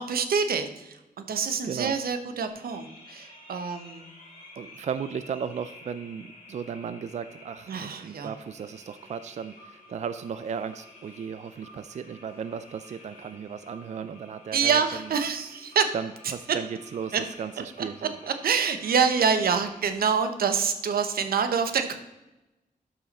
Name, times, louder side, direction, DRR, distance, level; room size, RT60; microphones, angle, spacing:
voice 1, 0.0-4.1 7.7-8.3 14.5-15.9 17.1-17.2 18.2-22.0, right 6 dB, 90° right, 8 dB, 0.9 m, -26 dB
voice 2, 1.6-2.0 4.6-15.1 15.9-18.2, right 7 dB, 50° right, 12 dB, 0.4 m, -35 dB
sound 1, 2.5-20.3, left 2 dB, 50° left, 3.2 m, -51 dB
12.5 x 5.6 x 4.2 m, 1.0 s
wide cardioid pair, 150°, 15 cm